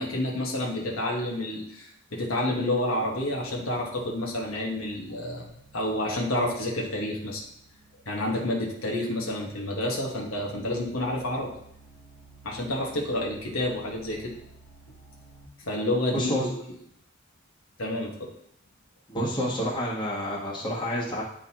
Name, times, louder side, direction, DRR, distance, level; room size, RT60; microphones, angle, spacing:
voice 1, 0.0-5.5 5.7-7.4 8.1-11.5 12.4-14.3 15.6-16.5 17.8-18.3, left 1 dB, 75° left, -1 dB, 1.3 m, -29 dB
sound 1, 3.1-15.5, right 3 dB, 60° left, 1.1 m, -55 dB
voice 2, 16.1-16.5 19.1-21.2, equal, 25° left, -5 dB, 1.4 m, -29 dB
10.0 x 3.8 x 2.9 m, 0.75 s
head